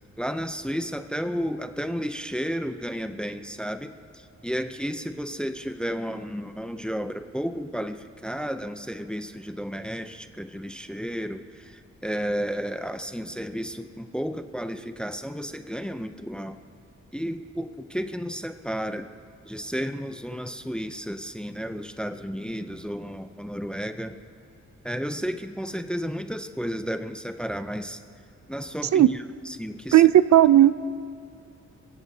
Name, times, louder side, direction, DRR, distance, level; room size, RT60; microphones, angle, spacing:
voice 1, 0.2-16.6 17.1-19.1 19.4-24.1 24.8-28.0 28.5-30.0, equal, 5° left, 8 dB, 0.5 m, -32 dB
voice 2, 29.9-30.7, right 12 dB, 65° right, 15 dB, 0.5 m, -15 dB
27.5 x 16.5 x 2.7 m, 2.5 s
wide cardioid pair, 175°, 30 cm